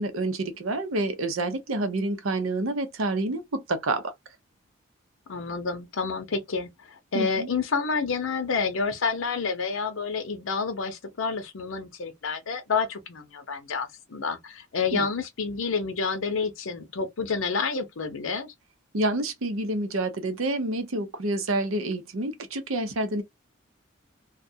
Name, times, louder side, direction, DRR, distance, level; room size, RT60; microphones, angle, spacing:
voice 1, 0.0-4.1 7.1-7.5 14.9-15.1 18.9-23.2, right 2 dB, 80° right, 0.7 m, -28 dB
voice 2, 5.3-18.5, left 5 dB, 75° left, 0.6 m, -29 dB
2.4 x 2.2 x 2.6 m
head